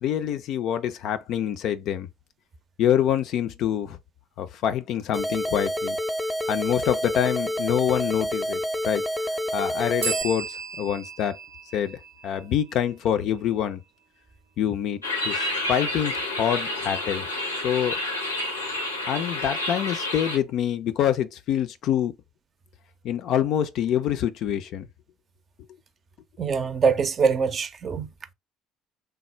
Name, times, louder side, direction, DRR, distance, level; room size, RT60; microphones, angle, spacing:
voice 1, 0.0-2.1 2.8-4.0 4.4-6.0 6.5-9.0 9.5-11.4 11.7-12.0 12.2-13.8 14.6-15.4 15.7-17.2 17.6-18.0 19.1-22.1 23.0-24.9, left 10 dB, 55° left, 0.4 m, -26 dB
sound 1, 5.1-10.2, equal, 10° left, 0.6 m, -28 dB
sound 2, 10.0-13.6, right 5 dB, 85° right, 0.7 m, -35 dB
sound 3, 15.0-20.4, left 1 dB, 90° left, 0.7 m, -29 dB
voice 2, 26.4-28.1, right 5 dB, 40° right, 0.5 m, -23 dB
3.3 x 2.1 x 4.0 m
figure-of-eight pair, 55°, 0 cm